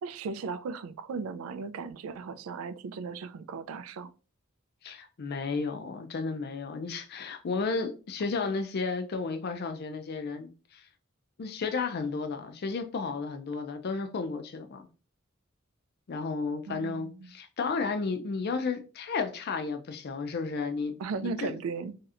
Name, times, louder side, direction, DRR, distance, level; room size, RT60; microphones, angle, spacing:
voice 1, 0.0-4.1 16.7-17.3 21.0-22.0, right 4 dB, 85° right, 0.3 m, -36 dB
voice 2, 4.8-10.8 11.4-14.9 16.1-20.9 21.2-21.6, left 4 dB, 50° left, 0.4 m, -33 dB
3.1 x 2.8 x 2.4 m
head